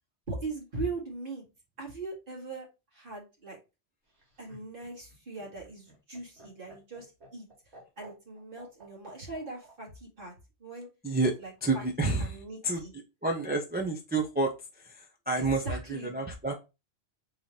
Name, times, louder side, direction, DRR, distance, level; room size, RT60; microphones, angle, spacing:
voice 1, 0.3-1.4 1.8-2.7 2.9-3.6 4.4-7.5 8.0-10.3 10.6-10.9 11.4-11.9 12.2-12.9 15.4-16.2, right 3 dB, 45° right, 2.1 m, -40 dB
Laughter, 4.1-9.8 11.0-11.7, right 1 dB, 60° right, 2.3 m, -53 dB
voice 2, 11.6-12.8 13.2-16.5, right 3 dB, 10° right, 0.4 m, -30 dB
3.9 x 3.2 x 4.2 m
omnidirectional pair, 1.2 m